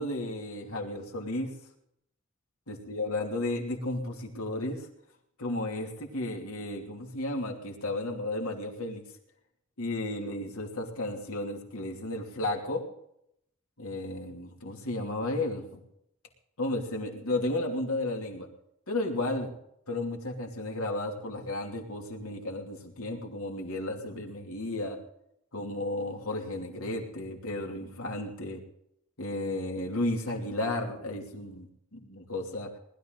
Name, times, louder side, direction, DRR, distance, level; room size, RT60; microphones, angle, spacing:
voice 1, 0.0-1.5 2.7-4.9 5.4-9.0 9.8-12.8 13.8-15.8 16.6-18.5 18.9-19.5 19.9-25.0 25.5-28.6 29.2-32.8, left 2 dB, 85° left, 2 dB, 2.8 m, -33 dB
20.0 x 12.5 x 3.9 m, 0.75 s
head